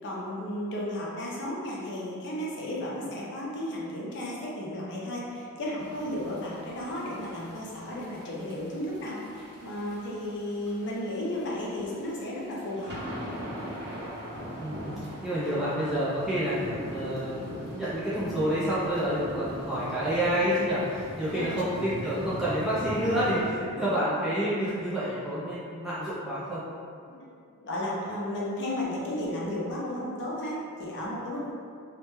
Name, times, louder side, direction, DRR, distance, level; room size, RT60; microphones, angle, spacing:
voice 1, 0.0-13.0 13.2-13.4 21.3-21.5 23.0-23.2 23.7-23.8 27.1-27.2 27.6-31.5, left 1 dB, 55° left, -5 dB, 0.5 m, -34 dB
sound 1, 5.8-23.5, equal, 55° right, 0.6 m, -41 dB
voice 2, 14.6-26.6, equal, ahead, -11 dB, 0.3 m, -29 dB
2.1 x 2.1 x 3.0 m, 2.4 s
head